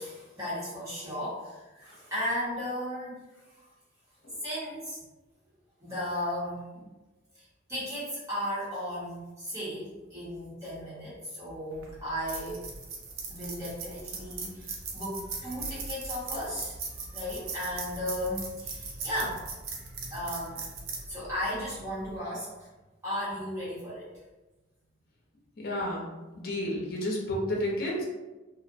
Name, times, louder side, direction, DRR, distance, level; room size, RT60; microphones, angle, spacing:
voice 1, 0.0-3.7 4.4-5.0 5.8-6.9 7.3-12.6 13.3-16.8 17.1-19.5 20.1-20.7 21.1-22.7 23.0-24.1, equal, 15° right, -9 dB, 0.7 m, -35 dB
sound 1, 11.7-22.2, right 4 dB, 85° right, 0.5 m, -39 dB
voice 2, 25.6-26.1 26.4-28.0, left 1 dB, 50° left, -2 dB, 0.6 m, -31 dB
2.5 x 2.0 x 2.5 m, 1.1 s
head